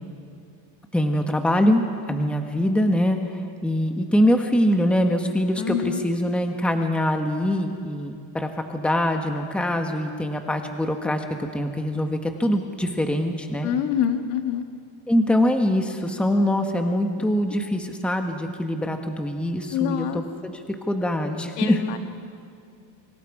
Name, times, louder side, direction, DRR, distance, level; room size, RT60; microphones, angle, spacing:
voice 1, 0.9-1.8 2.1-3.2 3.6-11.2 11.5-13.7 15.1-20.1 20.4-20.5 20.9-21.8, equal, 5° left, 4 dB, 1.2 m, -23 dB
voice 2, 5.6-6.0 13.6-14.7 19.7-20.2 21.6-22.0, left 9 dB, 65° left, 6 dB, 2.1 m, -25 dB
29.0 x 25.0 x 4.9 m, 2.5 s
cardioid pair, 155°, 44 cm